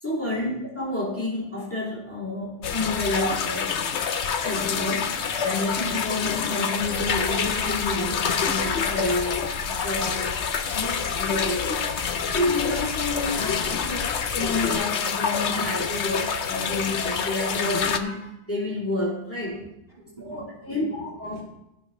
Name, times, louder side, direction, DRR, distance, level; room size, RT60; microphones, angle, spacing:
voice 1, 0.0-3.7 4.4-10.3 10.7-11.9 12.3-19.6 20.2-20.4 20.7-21.4, left 2 dB, 10° left, -7 dB, 2.5 m, -29 dB
sound 1, 2.6-18.0, left 6 dB, 90° left, 1.0 m, -27 dB
Rain, 6.8-14.8, left 4 dB, 30° left, 1.5 m, -38 dB
voice 2, 19.5-21.4, right 1 dB, 35° right, -8 dB, 3.9 m, -44 dB
15.0 x 6.0 x 3.7 m, 0.86 s
omnidirectional pair, 1.1 m